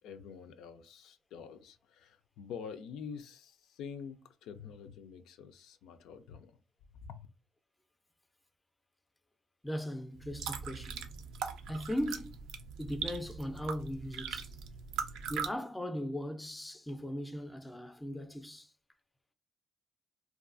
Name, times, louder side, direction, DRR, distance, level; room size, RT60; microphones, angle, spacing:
voice 1, 0.0-6.6 6.9-7.3, left 6 dB, 90° left, 0.3 m, -47 dB
voice 2, 9.6-11.1 11.7-12.4 12.8-14.5 15.3-18.7, equal, 10° left, 0.4 m, -38 dB
sound 1, 10.2-15.5, right 7 dB, 90° right, 0.3 m, -40 dB
2.6 x 2.3 x 2.5 m
cardioid pair, 90°, 0 cm